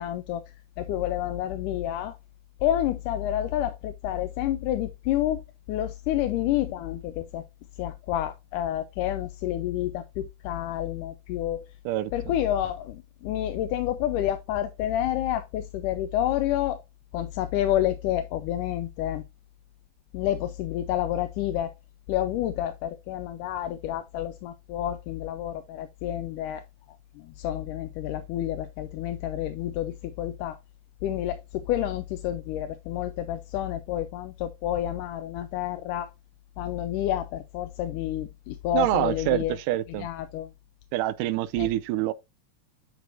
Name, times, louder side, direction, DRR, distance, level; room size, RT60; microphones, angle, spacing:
voice 1, 0.0-2.2 2.6-5.4 5.7-7.4 7.8-11.7 12.1-16.8 17.1-19.2 20.1-21.7 22.1-26.6 27.2-30.6 31.0-36.1 36.6-39.6 40.0-40.5 41.6-41.7, left 12 dB, 85° left, 2.2 m, -29 dB
voice 2, 38.7-40.1 40.9-42.1, right 15 dB, 85° right, 2.1 m, -26 dB
10.5 x 4.6 x 2.5 m
omnidirectional pair, 3.6 m